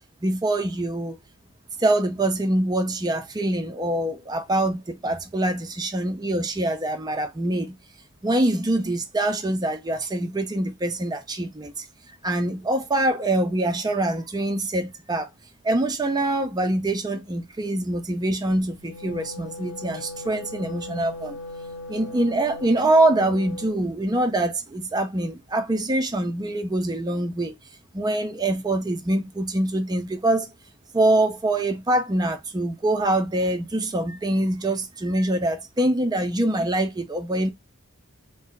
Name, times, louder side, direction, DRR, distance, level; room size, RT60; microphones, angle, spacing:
voice 1, 0.2-1.2 1.8-7.7 8.2-11.9 12.2-15.3 15.6-21.4 21.9-27.5 27.9-30.5 30.9-37.5, right 1 dB, 20° right, 0.4 m, -24 dB
Wind instrument woodwind instrument, 18.7-23.8, left 2 dB, 90° left, 0.8 m, -38 dB
2.6 x 2.1 x 3.7 m
head